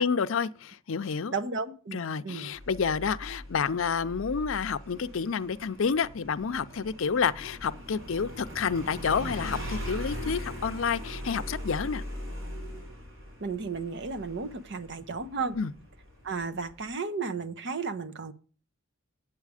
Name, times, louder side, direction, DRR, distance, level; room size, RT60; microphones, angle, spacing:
voice 1, 0.0-1.3 1.9-12.0 15.5-15.7, left 6 dB, 65° left, 0.5 m, -29 dB
voice 2, 1.3-2.5 13.4-15.6 16.2-18.3, right 4 dB, 55° right, 0.7 m, -34 dB
Motorcycle, 2.6-16.9, equal, 70° right, 4.5 m, -40 dB
8.3 x 8.3 x 4.9 m
head